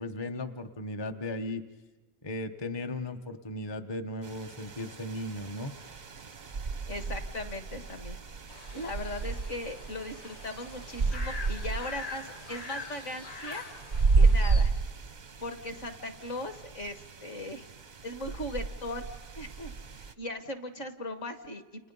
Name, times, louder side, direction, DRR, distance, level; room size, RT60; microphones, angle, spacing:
voice 1, 0.0-1.6 2.2-5.7, left 1 dB, 25° left, 5 dB, 0.6 m, -36 dB
sound 1, 4.2-20.1, right 4 dB, 40° right, 0.6 m, -32 dB
voice 2, 6.9-8.2 8.7-13.6 14.1-14.7 15.4-17.7 18.0-19.1 19.4-19.7 20.2-21.9, left 1 dB, 40° left, 9 dB, 1.7 m, -38 dB
sound 2, 8.5-14.6, left 3 dB, 75° left, 3.4 m, -44 dB
29.5 x 29.5 x 5.5 m, 1.2 s
omnidirectional pair, 2.1 m